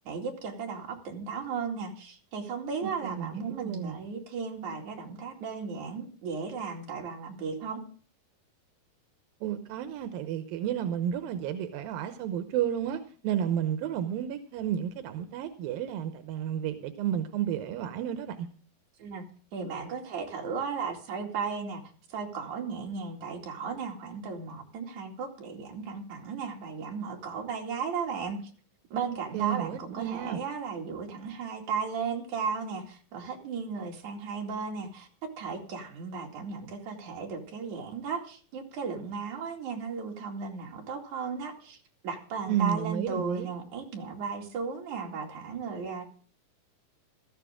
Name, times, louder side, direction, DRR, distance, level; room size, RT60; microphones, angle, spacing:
voice 1, 0.1-7.8 19.0-19.3 19.5-21.8 22.1-28.5 28.9-35.1 35.4-41.8 42.0-46.0, right 5 dB, 60° right, 3.7 m, -35 dB
voice 2, 3.0-4.0 9.4-18.5 22.4-22.5 29.3-30.4 42.5-43.5, right 9 dB, 85° right, 2.8 m, -32 dB
17.5 x 13.5 x 3.7 m
omnidirectional pair, 4.0 m